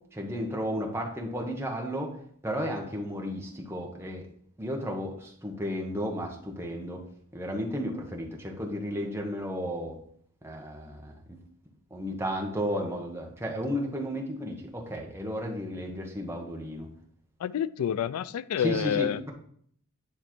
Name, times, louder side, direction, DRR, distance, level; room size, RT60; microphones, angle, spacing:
voice 1, 0.1-2.2 2.4-4.2 4.6-7.0 7.3-10.0 10.4-11.4 11.9-16.9 18.6-19.3, equal, 10° right, 1.1 m, -33 dB
voice 2, 17.4-19.3, left 9 dB, 85° left, 0.3 m, -29 dB
9.7 x 3.3 x 4.4 m
head